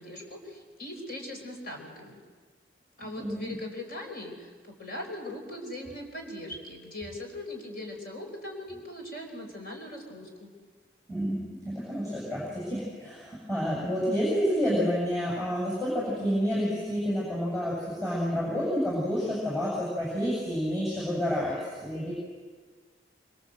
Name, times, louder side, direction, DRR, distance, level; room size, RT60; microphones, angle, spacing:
voice 1, 0.0-2.2 3.0-10.5, left 1 dB, 50° left, 1 dB, 4.8 m, -40 dB
voice 2, 3.0-3.6 11.1-22.1, equal, 15° left, -5 dB, 7.5 m, -29 dB
25.5 x 25.5 x 7.9 m, 1.5 s
head